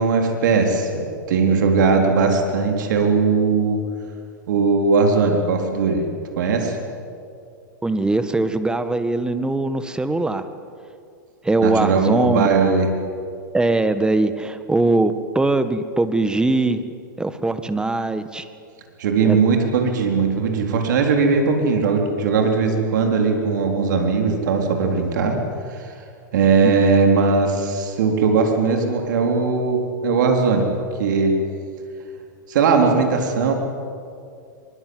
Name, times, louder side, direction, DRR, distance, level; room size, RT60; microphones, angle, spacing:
voice 1, 0.0-3.8 4.5-6.0 6.4-6.8 11.6-12.9 19.0-25.4 25.7-25.9 26.3-30.7 31.0-31.4 32.5-33.5, right 4 dB, 70° right, 3 dB, 3.9 m, -19 dB
voice 2, 7.8-10.4 11.4-12.5 13.5-16.8 17.2-18.5 19.2-19.4 26.6-26.9, right 2 dB, 10° right, 10 dB, 1.6 m, -21 dB
24.0 x 22.5 x 7.9 m, 2.4 s
hypercardioid pair, 105°, 11 cm